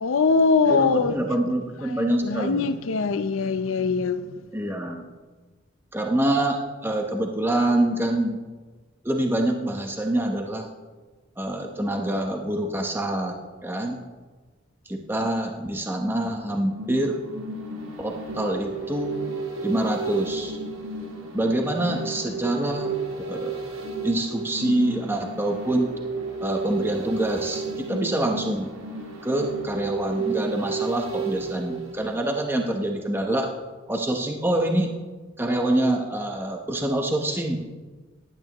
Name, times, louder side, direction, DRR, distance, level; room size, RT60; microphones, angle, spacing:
voice 1, 0.0-1.2 1.9-4.2, left 4 dB, 80° left, 12 dB, 0.6 m, -22 dB
voice 2, 0.7-2.7 4.5-5.0 5.9-8.4 9.0-10.7 11.4-14.0 14.9-17.2 18.0-19.2 19.6-20.6 21.3-22.9 23.3-23.6 24.0-25.9 26.4-28.7 29.2-33.5 33.9-34.9 35.4-37.6, right 1 dB, 10° right, 2 dB, 0.9 m, -26 dB
sound 1, 16.4-32.7 33.0-33.1, right 4 dB, 85° right, 1.8 m, -33 dB
15.5 x 11.0 x 3.0 m, 1.3 s
head